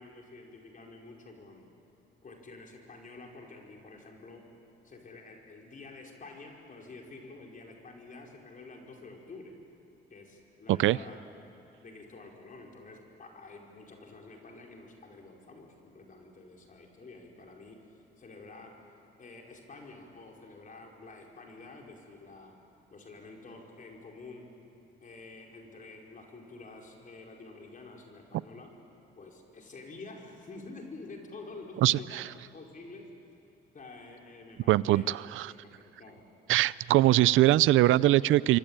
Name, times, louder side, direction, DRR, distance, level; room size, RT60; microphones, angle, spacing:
voice 1, 0.0-1.6 2.2-4.4 4.8-9.5 10.1-11.2 11.8-17.8 18.2-18.9 19.2-22.5 22.9-24.5 25.0-28.7 29.2-32.2 32.5-33.1 33.7-35.0 35.8-36.2, left 3 dB, 40° left, 0 dB, 5.0 m, -48 dB
voice 2, 34.7-35.5 36.5-38.6, right 15 dB, 85° right, 20 dB, 0.6 m, -22 dB
27.5 x 23.5 x 8.9 m, 3.0 s
cardioid pair, 90°, 20 cm